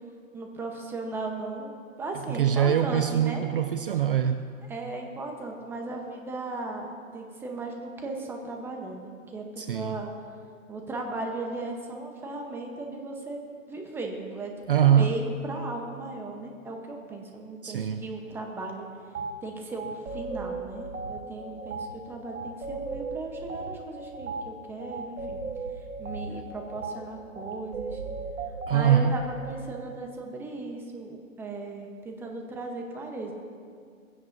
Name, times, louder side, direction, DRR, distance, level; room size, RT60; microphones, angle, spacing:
voice 1, 0.3-1.7 2.0-3.4 4.7-6.9 7.1-10.1 10.7-13.4 13.7-14.5 14.8-18.9 19.4-25.4 25.7-28.0 28.7-33.3, right 2 dB, 5° right, 2 dB, 0.9 m, -36 dB
voice 2, 2.3-4.5 9.6-10.0 14.7-15.2 17.6-18.1 28.7-29.2, right 9 dB, 45° right, 8 dB, 0.5 m, -23 dB
sound 1, 19.1-19.3 19.8-29.5, right 3 dB, 75° right, 1.2 m, -37 dB
20.0 x 16.0 x 2.7 m, 2.2 s
hypercardioid pair, 145°, 41 cm